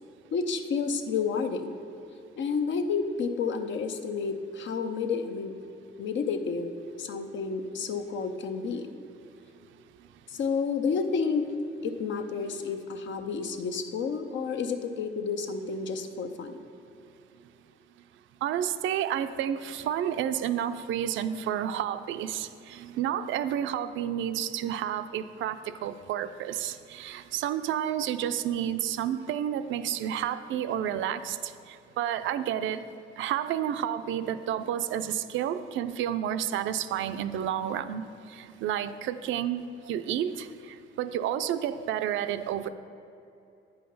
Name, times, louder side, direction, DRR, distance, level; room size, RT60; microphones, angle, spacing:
voice 1, 0.3-1.7 2.4-5.5 6.0-8.9 10.3-11.5 11.8-16.6, left 5 dB, 70° left, 7 dB, 0.7 m, -30 dB
voice 2, 18.4-31.5 32.0-32.8 33.2-39.6 39.9-40.5 41.0-42.7, right 10 dB, 80° right, 11 dB, 0.4 m, -30 dB
8.5 x 5.7 x 5.4 m, 2.8 s
cardioid pair, 90°, 20 cm